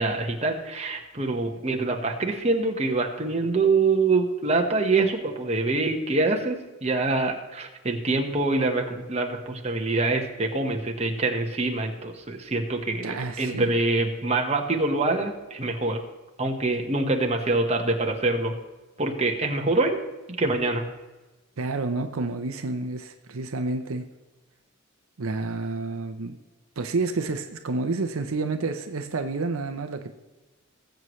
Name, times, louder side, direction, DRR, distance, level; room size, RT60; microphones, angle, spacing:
voice 1, 0.0-16.0 16.4-18.5 19.0-20.0 20.3-20.8, right 3 dB, 30° right, 2 dB, 1.3 m, -25 dB
voice 2, 13.0-13.7 21.6-24.1 25.2-26.4 26.8-30.1, right 3 dB, 75° right, 7 dB, 0.7 m, -29 dB
19.0 x 7.9 x 3.2 m, 1.2 s
head